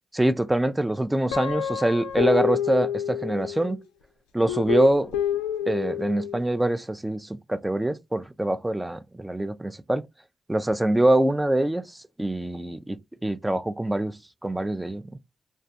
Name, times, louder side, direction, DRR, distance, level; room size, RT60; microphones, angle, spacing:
voice 1, 0.1-3.8 4.3-5.1 5.7-10.1 10.5-15.0, right 1 dB, 15° right, 0.4 m, -24 dB
Guitar, 1.3-3.8 4.5-6.4, left 9 dB, 90° left, 0.3 m, -28 dB
2.3 x 2.2 x 2.6 m
hypercardioid pair, 40°, 0 cm